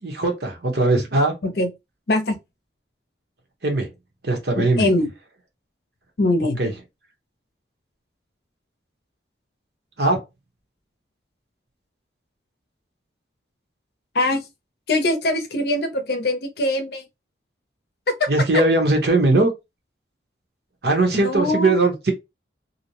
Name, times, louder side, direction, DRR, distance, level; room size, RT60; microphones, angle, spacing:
voice 1, 0.0-1.3 3.6-3.9 4.2-4.9 6.6-6.7 10.0-10.2 18.3-19.5 20.8-22.1, right 2 dB, 60° right, 0.9 m, -19 dB
voice 2, 4.6-5.1 6.2-6.6 14.1-14.4 14.9-17.0 18.2-18.3 21.1-21.8, left 1 dB, 55° left, 0.6 m, -22 dB
2.6 x 2.1 x 2.8 m
head